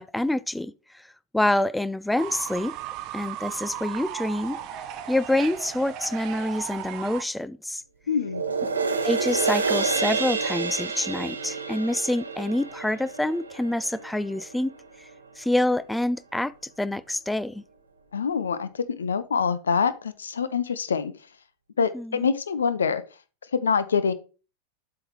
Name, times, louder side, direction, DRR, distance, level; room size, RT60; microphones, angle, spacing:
voice 1, 0.0-2.8 3.1-4.6 5.1-7.8 9.0-14.7 15.0-15.1 15.4-17.6 21.9-22.3, left 1 dB, 5° left, 0.3 m, -27 dB
Fowl / Bird, 2.2-7.2, right 11 dB, 40° right, 0.6 m, -36 dB
voice 2, 8.1-8.4 18.1-21.1 21.8-23.0 23.5-24.1, left 6 dB, 70° left, 0.5 m, -25 dB
sound 1, 8.2-14.8 15.3-15.4, right 4 dB, 75° right, 0.8 m, -29 dB
7.7 x 3.8 x 4.6 m
figure-of-eight pair, 90°, 0 cm